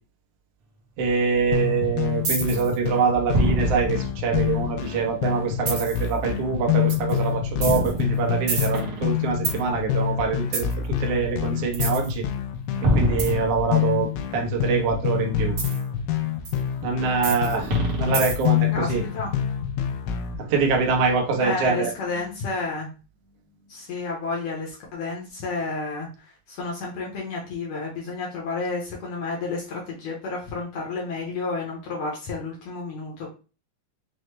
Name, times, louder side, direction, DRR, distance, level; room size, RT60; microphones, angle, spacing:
voice 1, 1.0-10.7 11.0-12.2 12.9-15.5 16.8-17.7 18.0-19.0 20.4-21.9, right 5 dB, 85° right, 0 dB, 1.4 m, -24 dB
sound 1, 1.5-20.4, left 8 dB, 85° left, 2.4 m, -27 dB
sound 2, 2.2-2.7 3.3-4.9 5.7-6.1 6.9-7.1 7.6-9.6 10.5-10.7 11.7-12.1 12.8-14.0 15.6-15.8 16.4-16.5 17.2-18.6, right 1 dB, 65° right, 1.4 m, -26 dB
voice 2, 18.7-19.3 21.4-22.9 23.7-33.3, left 3 dB, 70° left, -3 dB, 1.5 m, -31 dB
6.1 x 2.1 x 3.1 m, 0.34 s
omnidirectional pair, 4.2 m